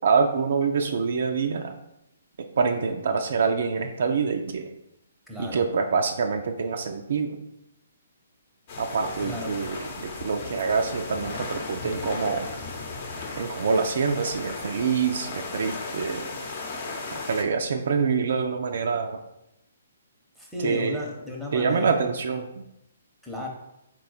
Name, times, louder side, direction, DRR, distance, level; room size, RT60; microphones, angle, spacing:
voice 1, 0.0-1.7 2.4-4.8 5.4-7.4 8.8-12.5 13.4-16.4 17.1-19.2 20.6-21.0 21.5-22.6, right 5 dB, 60° right, 5 dB, 0.3 m, -26 dB
voice 2, 5.3-5.6 9.2-9.6 20.4-22.1 23.2-23.5, left 2 dB, ahead, -2 dB, 0.8 m, -34 dB
sound 1, 8.7-17.4, left 3 dB, 40° left, 0.8 m, -36 dB
4.2 x 2.2 x 4.0 m, 0.84 s
figure-of-eight pair, 130°, 0 cm